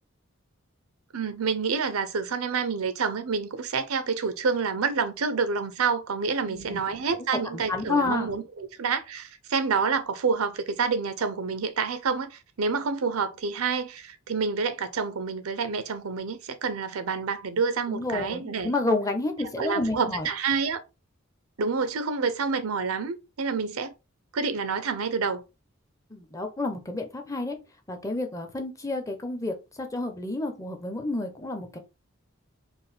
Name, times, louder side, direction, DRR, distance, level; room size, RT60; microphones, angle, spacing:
voice 1, 1.1-18.7 19.6-20.8 21.6-23.9 24.3-25.4, right 5 dB, 90° right, 0.6 m, -28 dB
voice 2, 6.5-6.8 7.5-8.3 17.9-20.3 26.1-27.6 27.9-31.8, left 2 dB, 15° left, 0.6 m, -30 dB
4.5 x 2.2 x 3.3 m
head